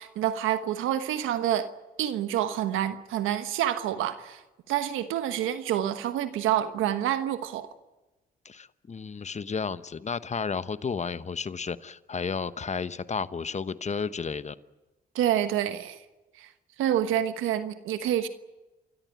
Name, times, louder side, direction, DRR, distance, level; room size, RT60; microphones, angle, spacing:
voice 1, 0.0-1.7 2.0-4.4 4.7-7.7 15.1-16.0 16.4-16.5 16.8-18.3, right 11 dB, 90° right, 1.3 m, -27 dB
voice 2, 8.4-14.6, left 5 dB, 35° left, 1.0 m, -32 dB
29.5 x 13.5 x 9.6 m
supercardioid pair, 55°, 20 cm